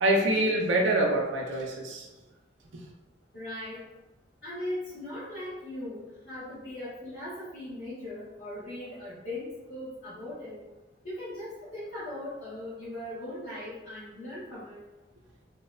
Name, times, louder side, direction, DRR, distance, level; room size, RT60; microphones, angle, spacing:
voice 1, 0.0-2.1, right 1 dB, 75° right, -1 dB, 0.5 m, -25 dB
voice 2, 3.3-3.8 4.4-10.6 11.0-14.8, left 1 dB, 65° left, -14 dB, 1.1 m, -39 dB
2.8 x 2.0 x 2.3 m, 1.0 s
head